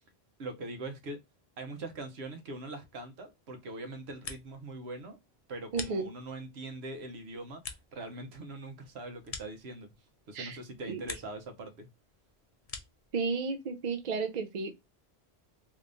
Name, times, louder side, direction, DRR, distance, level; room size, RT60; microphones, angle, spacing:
voice 1, 0.4-1.2 1.6-5.2 5.5-7.6 7.9-9.9 10.3-11.9, right 2 dB, 85° right, 1.0 m, -42 dB
sound 1, 3.9-4.7 5.0-6.5 6.9-10.2 10.5-11.5 11.8-13.1, left 5 dB, 45° left, 0.5 m, -46 dB
voice 2, 5.7-6.1 10.3-10.6 10.9-11.1 13.1-14.8, right 4 dB, 55° right, 0.5 m, -33 dB
2.8 x 2.6 x 3.3 m
omnidirectional pair, 1.0 m